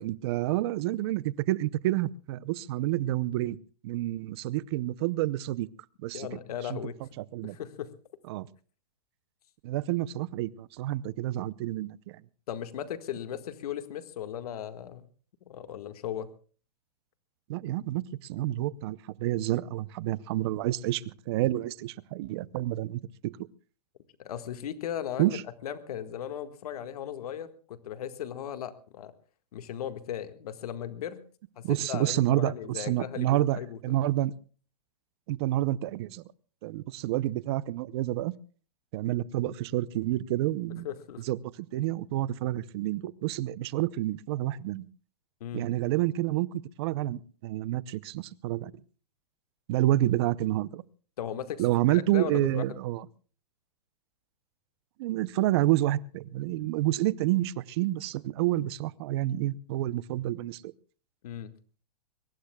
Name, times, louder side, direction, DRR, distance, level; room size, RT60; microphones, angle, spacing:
voice 1, 0.0-3.6 3.8-5.7 6.0-6.3 6.7-6.8 7.2-7.6 8.3-8.5 9.6-12.2 17.5-23.3 25.2-25.4 31.6-34.3 35.3-36.2 36.6-38.3 38.9-40.9 41.2-41.4 41.7-44.9 45.5-48.7 49.7-50.8 51.6-53.0 55.0-60.7, right 15 dB, 40° right, 20 dB, 0.6 m, -29 dB
voice 2, 6.1-7.0 7.4-7.9 12.5-15.1 15.5-16.3 24.2-25.4 25.6-29.1 29.5-31.2 31.5-33.8 40.8-41.2 45.4-45.7 51.2-51.6 51.9-52.8 61.2-61.5, left 10 dB, 65° left, 10 dB, 1.7 m, -37 dB
23.5 x 21.5 x 2.3 m, 0.39 s
hypercardioid pair, 155°, 21 cm